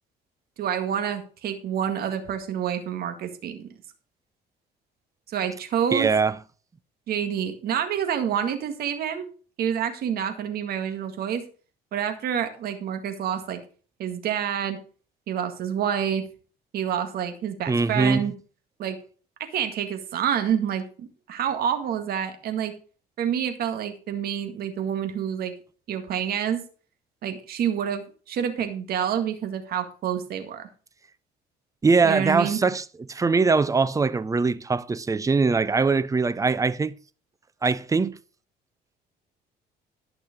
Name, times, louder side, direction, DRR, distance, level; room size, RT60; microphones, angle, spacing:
voice 1, 0.6-3.7 5.3-6.1 7.1-9.3 9.6-11.4 11.9-13.6 14.0-14.8 15.3-16.2 16.7-18.3 18.8-19.0 19.5-22.7 23.2-25.5 25.9-26.7 27.2-30.7 32.0-32.6, right 9 dB, 65° right, 1.9 m, -28 dB
voice 2, 5.9-6.4 17.7-18.3 31.8-36.9 37.6-38.2, right 4 dB, 20° right, 0.6 m, -22 dB
12.0 x 6.2 x 5.2 m
cardioid pair, 110°, 17 cm